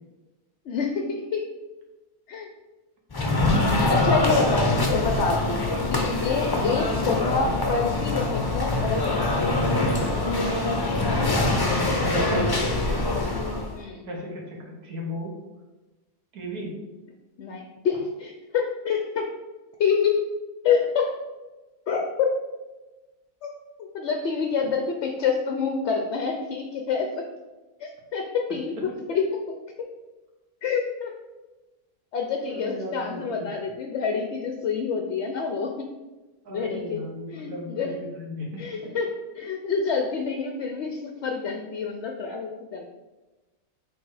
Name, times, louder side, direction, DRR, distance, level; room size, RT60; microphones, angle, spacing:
voice 1, 0.7-1.5 2.3-2.5 3.5-3.6 3.9-9.8 13.7-14.1 17.4-19.3 19.8-20.3 20.6-21.1 21.9-22.4 23.4-23.5 23.8-27.2 27.8-29.9 30.6-31.2 32.1-35.9 36.5-37.0 37.3-38.0 38.6-39.1 39.4-42.9, left 5 dB, 65° left, 3 dB, 0.7 m, -27 dB
sound 1, 3.1-13.8, left 2 dB, 30° left, 0.4 m, -24 dB
voice 2, 11.8-13.3 14.1-15.3 16.3-16.8 32.4-33.5 36.5-38.9, equal, 80° right, -1 dB, 1.9 m, -35 dB
6.5 x 3.4 x 4.7 m, 1.2 s
omnidirectional pair, 1.6 m